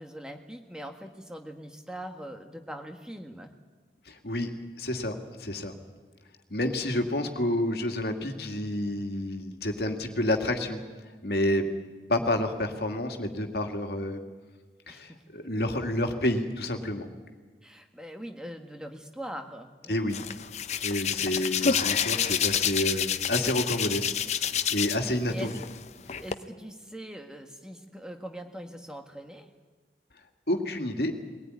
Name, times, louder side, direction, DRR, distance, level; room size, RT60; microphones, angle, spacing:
voice 1, 0.0-3.5 14.9-15.2 17.6-20.0 21.0-21.3 25.0-25.6 26.2-29.5, equal, 5° right, 4 dB, 1.6 m, -42 dB
voice 2, 4.1-4.5 4.8-5.7 6.5-10.8 11.2-11.7 12.1-14.2 14.9-17.1 19.9-20.2 20.8-24.1 24.7-25.5 26.1-26.2 30.5-31.1, left 1 dB, 65° left, 4 dB, 2.2 m, -29 dB
Hands, 20.1-25.1 25.4-26.3, left 8 dB, 40° left, 0.8 m, -28 dB
21.0 x 18.0 x 9.7 m, 1.4 s
head